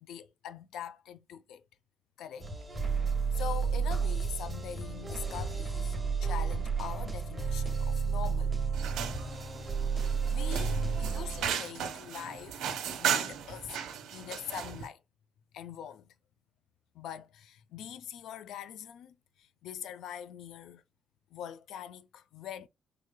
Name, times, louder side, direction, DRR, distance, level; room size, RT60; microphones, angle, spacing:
voice 1, 0.0-1.6 2.2-2.5 3.3-9.3 9.7-9.8 10.1-12.6 13.0-15.0 15.5-16.1 16.9-20.8 21.3-22.7, left 9 dB, 80° left, 0.5 m, -43 dB
sound 1, 2.4-11.5, right 5 dB, 15° right, 1.5 m, -32 dB
sound 2, 8.7-14.9, right 8 dB, 80° right, 1.0 m, -36 dB
4.8 x 3.7 x 2.2 m
cardioid pair, 90°, 0 cm